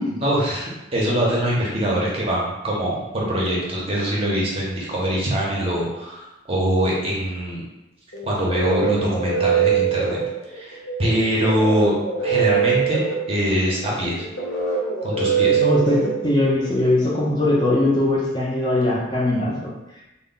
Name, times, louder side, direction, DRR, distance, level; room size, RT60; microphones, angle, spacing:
voice 1, 0.1-7.6 8.2-10.2 10.5-11.9 12.2-13.0 13.3-14.3 15.0-15.6, equal, 30° right, -5 dB, 0.6 m, -23 dB
sound 1, 8.1-16.8, right 6 dB, 70° left, 0.6 m, -23 dB
voice 2, 15.5-19.7, left 1 dB, 20° left, -5 dB, 0.4 m, -21 dB
2.1 x 2.0 x 3.7 m, 0.96 s
head